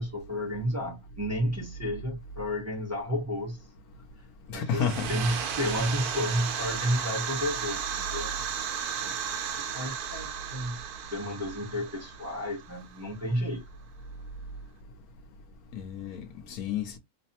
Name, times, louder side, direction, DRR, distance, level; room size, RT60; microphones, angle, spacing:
voice 1, 0.0-3.7 4.5-4.8 5.1-8.3 9.0-9.2 9.5-10.8 11.1-13.6, equal, 15° right, 0.6 m, -31 dB
voice 2, 4.5-5.1 15.7-17.0, left 7 dB, 85° left, 1.1 m, -31 dB
sound 1, 4.7-13.2, right 7 dB, 85° right, 1.2 m, -34 dB
3.2 x 2.0 x 2.8 m
omnidirectional pair, 1.6 m